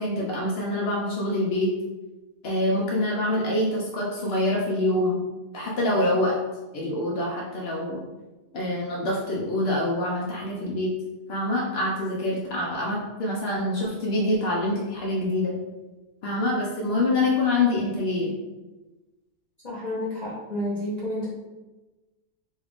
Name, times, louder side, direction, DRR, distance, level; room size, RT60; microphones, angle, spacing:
voice 1, 0.0-1.7 2.4-5.2 5.5-6.4 6.7-8.0 8.5-10.9 11.3-15.5 16.2-18.3, left 1 dB, 80° left, -3 dB, 0.5 m, -25 dB
voice 2, 19.6-21.3, left 1 dB, 35° left, -9 dB, 0.8 m, -30 dB
3.2 x 2.4 x 3.4 m, 1.1 s
omnidirectional pair, 1.8 m